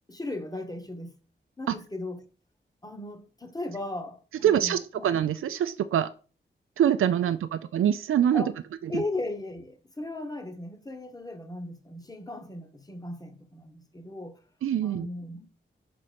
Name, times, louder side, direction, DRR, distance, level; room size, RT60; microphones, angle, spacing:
voice 1, 0.1-1.2 1.6-2.2 2.8-5.1 8.3-8.5 8.9-14.4 14.8-15.5, left 2 dB, 20° left, 1.2 m, -37 dB
voice 2, 4.4-6.1 6.8-8.5 8.8-9.0 14.6-15.1, right 9 dB, 85° right, 0.4 m, -24 dB
5.5 x 4.0 x 5.0 m
cardioid pair, 65°, 21 cm